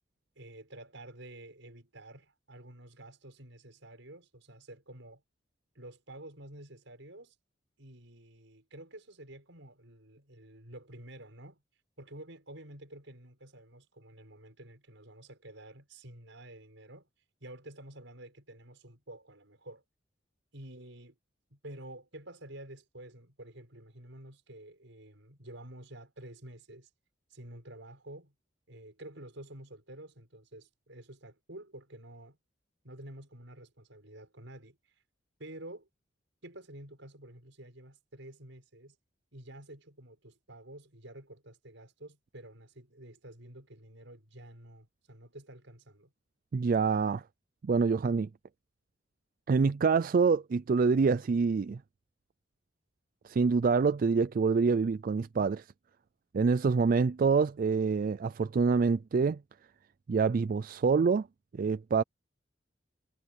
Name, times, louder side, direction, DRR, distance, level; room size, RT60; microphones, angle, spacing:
voice 1, 0.4-5.2 5.7-7.4 7.8-11.6 12.0-17.1 17.4-19.8 20.5-21.2 21.5-26.9 27.3-28.3 28.7-32.4 32.8-35.0 35.4-35.9 36.4-39.0 39.3-46.1, right 1 dB, 75° right, 6.2 m, -50 dB
voice 2, 46.5-47.2 47.6-48.3 49.5-51.8 53.2-55.6 56.3-59.4 60.1-61.3 61.5-62.0, right 5 dB, 45° right, 0.4 m, -26 dB
head